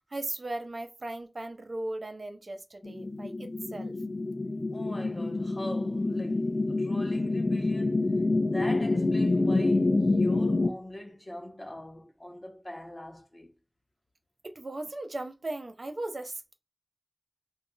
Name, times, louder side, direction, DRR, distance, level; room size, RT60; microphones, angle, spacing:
voice 1, 0.1-4.0 14.4-16.5, right 2 dB, 80° right, 0.4 m, -37 dB
sound 1, 2.8-10.7, left 2 dB, 80° left, 0.4 m, -27 dB
voice 2, 4.7-8.1 8.4-13.5, left 1 dB, 40° left, 0.6 m, -42 dB
2.3 x 2.0 x 3.7 m
wide cardioid pair, 55°, 0 cm